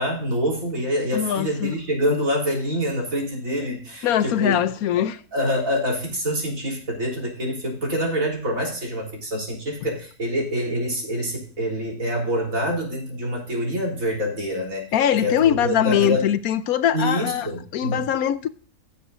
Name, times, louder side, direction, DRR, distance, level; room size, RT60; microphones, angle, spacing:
voice 1, 0.0-4.6 5.0-5.1 5.3-14.8 15.2-16.3 16.9-18.0, equal, 60° right, 4.0 m, -26 dB
voice 2, 1.1-1.7 4.0-5.2 14.9-17.5 17.7-18.5, left 10 dB, 75° left, 1.1 m, -22 dB
16.5 x 7.1 x 2.4 m
omnidirectional pair, 1.6 m